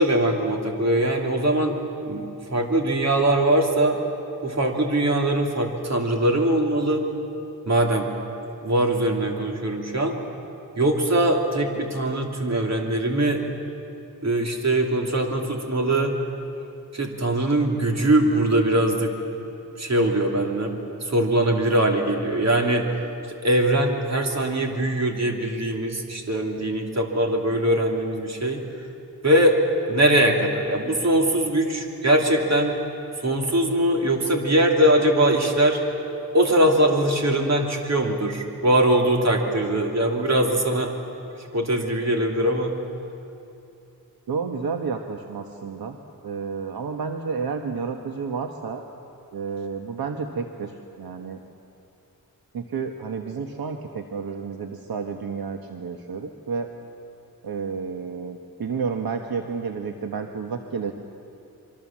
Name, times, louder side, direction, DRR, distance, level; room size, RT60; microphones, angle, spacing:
voice 1, 0.0-1.8 2.0-4.0 4.4-7.0 7.7-8.1 8.6-10.2 10.8-13.4 14.2-16.2 16.9-19.1 19.8-20.7 21.1-22.9 23.4-28.6 29.2-29.6 29.9-32.8 33.2-35.8 36.3-40.9 41.5-42.7, right 1 dB, 45° right, 2 dB, 2.9 m, -21 dB
voice 2, 44.3-46.0 46.2-48.8 49.3-51.4 52.5-56.7 57.4-60.9, right 5 dB, 75° right, 4 dB, 1.3 m, -31 dB
25.5 x 24.0 x 7.4 m, 2.7 s
wide cardioid pair, 120°, 36 cm